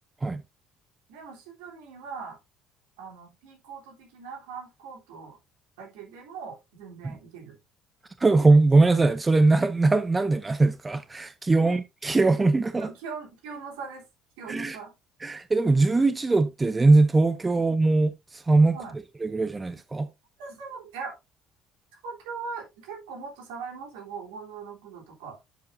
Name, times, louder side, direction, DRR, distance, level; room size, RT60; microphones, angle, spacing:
voice 1, 1.1-2.4 3.0-5.4 5.8-7.6 11.6-11.7 12.8-14.0 14.4-14.9 17.6-17.7 18.7-18.9 20.4-21.2 22.0-25.4, right 5 dB, 80° right, 3.4 m, -40 dB
voice 2, 8.2-12.9 14.5-14.8 15.2-18.8 19.2-20.1, right 3 dB, 20° right, 0.7 m, -21 dB
11.0 x 5.4 x 2.7 m
hypercardioid pair, 70°, 0 cm